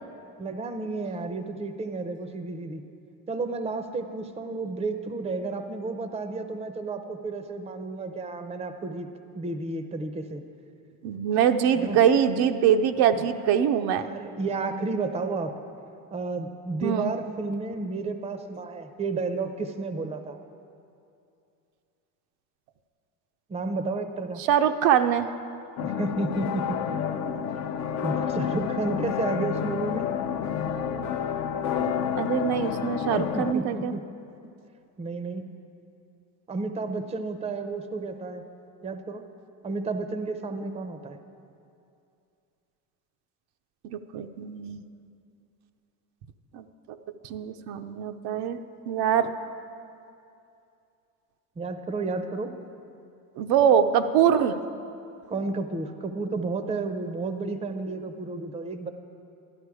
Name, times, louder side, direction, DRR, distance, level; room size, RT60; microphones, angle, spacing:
voice 1, 0.4-2.8 3.3-10.4 11.7-12.0 13.1-13.3 14.0-15.5 16.1-20.4 23.5-24.4 25.8-27.0 28.0-30.1 33.2-34.0 35.0-35.5 36.5-38.4 38.8-39.2 39.6-41.2 51.6-52.5 55.3-58.9, right 3 dB, 15° right, 8 dB, 0.6 m, -32 dB
voice 2, 11.0-14.1 16.8-17.1 24.5-25.3 31.8-33.9 43.8-44.8 46.5-46.6 47.2-48.6 48.9-49.3 53.4-54.6, right 8 dB, 80° right, 8 dB, 0.7 m, -23 dB
sound 1, 25.8-33.5, left 8 dB, 45° left, 0.6 m, -29 dB
12.0 x 11.5 x 4.8 m, 2.6 s
cardioid pair, 135°, 38 cm